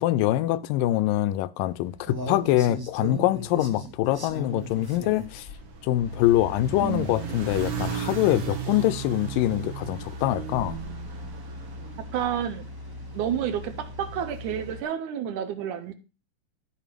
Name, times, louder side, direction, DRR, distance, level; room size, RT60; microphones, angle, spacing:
voice 1, 0.0-5.5 5.8-10.8, left 14 dB, 80° left, 2.1 m, -24 dB
sound 1, 1.7-14.8, left 1 dB, 30° right, 0.4 m, -39 dB
sound 2, 4.4-12.8, right 7 dB, 50° right, 2.0 m, -36 dB
voice 2, 12.1-12.7 13.1-15.9, right 9 dB, 70° right, 2.0 m, -30 dB
12.5 x 5.3 x 5.1 m
omnidirectional pair, 4.2 m